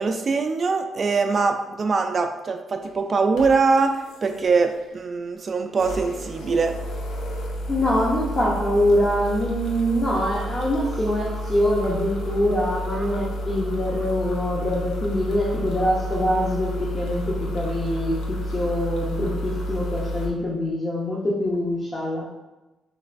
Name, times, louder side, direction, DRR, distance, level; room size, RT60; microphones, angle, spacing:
voice 1, 0.0-6.7 12.9-13.1, right 4 dB, 40° right, 6 dB, 0.3 m, -23 dB
sound 1, 2.7-2.9 3.4-4.9 5.7-20.3, equal, 80° left, 0.6 m, -31 dB
voice 2, 7.7-22.3, left 1 dB, 25° left, -5 dB, 0.7 m, -24 dB
3.2 x 3.0 x 2.5 m, 1.0 s
cardioid pair, 90°, 0 cm